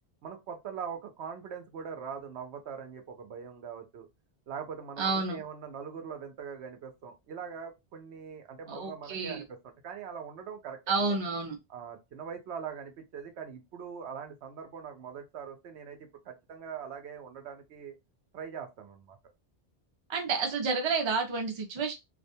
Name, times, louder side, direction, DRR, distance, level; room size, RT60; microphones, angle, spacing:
voice 1, 0.2-4.1 4.5-11.0 11.7-18.0 18.3-19.2, right 7 dB, 80° right, 0.9 m, -42 dB
voice 2, 5.0-5.4 8.7-9.4 10.9-11.6 20.1-21.9, right 4 dB, 35° right, 0.5 m, -30 dB
2.4 x 2.2 x 2.6 m
omnidirectional pair, 1.1 m